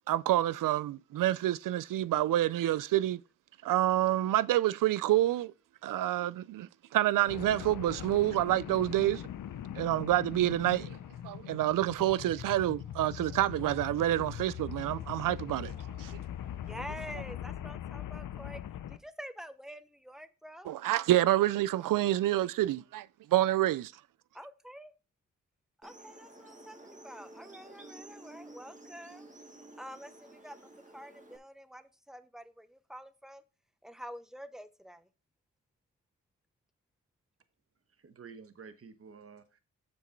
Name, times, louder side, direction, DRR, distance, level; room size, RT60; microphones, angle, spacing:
voice 1, 0.1-3.2 3.6-5.5 5.8-9.2 9.7-11.0 11.2-15.7 16.0-16.2 20.6-23.9, right 14 dB, 85° right, 0.5 m, -28 dB
sound 1, 7.3-19.0, left 11 dB, 75° left, 0.7 m, -41 dB
voice 2, 16.7-18.6 18.9-20.7 24.3-24.9 25.8-29.3 29.8-30.6 30.9-33.4 33.8-35.1, equal, ahead, 0.8 m, -47 dB
sound 2, 25.8-31.4, right 1 dB, 25° right, 1.8 m, -52 dB
voice 3, 37.9-39.6, right 5 dB, 45° right, 1.1 m, -51 dB
7.2 x 6.2 x 4.5 m
cardioid pair, 70°, 32 cm